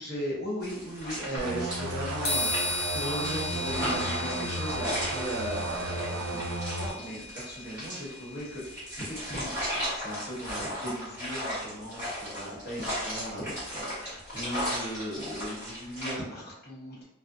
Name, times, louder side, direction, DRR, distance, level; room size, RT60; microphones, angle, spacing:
voice 1, 0.0-17.0, equal, 50° left, -8 dB, 0.9 m, -37 dB
sound 1, 0.6-16.1, equal, 5° right, 1.4 m, -36 dB
sound 2, 1.4-6.9, right 2 dB, 90° right, 0.4 m, -34 dB
sound 3, 2.2-9.9, left 2 dB, 80° left, 0.6 m, -37 dB
2.5 x 2.0 x 2.5 m, 0.82 s
head